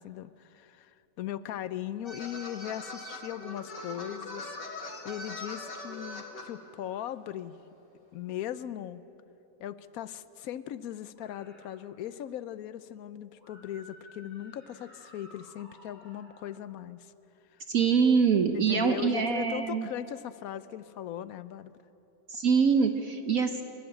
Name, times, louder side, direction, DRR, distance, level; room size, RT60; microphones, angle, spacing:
voice 1, 0.0-7.5 8.1-9.0 9.6-17.1 18.5-21.7, left 11 dB, 65° left, 15 dB, 1.0 m, -39 dB
sound 1, 2.0-6.5, left 2 dB, 85° left, 2.7 m, -41 dB
sound 2, 11.1-11.7 13.4-16.5, left 1 dB, 5° left, 6.2 m, -54 dB
voice 2, 17.7-19.9 22.3-23.6, right 6 dB, 60° right, 7 dB, 1.2 m, -24 dB
29.0 x 12.0 x 8.9 m, 3.0 s
omnidirectional pair, 1.8 m